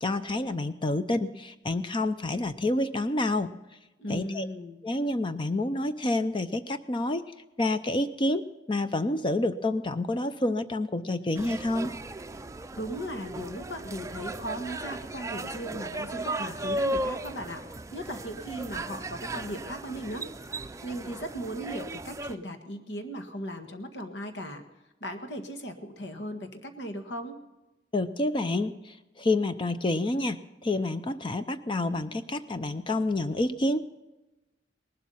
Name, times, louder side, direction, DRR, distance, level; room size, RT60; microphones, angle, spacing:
voice 1, 0.0-3.5 4.1-4.5 4.8-7.2 7.6-11.9 27.9-33.8, left 2 dB, 30° left, 11 dB, 0.6 m, -28 dB
voice 2, 4.0-4.8 12.8-17.6 17.9-20.3 20.8-24.6 25.0-27.4, equal, 80° left, 7 dB, 1.8 m, -37 dB
sound 1, 11.4-22.4, right 1 dB, 20° right, 0.5 m, -36 dB
19.0 x 12.0 x 5.6 m, 1.0 s
head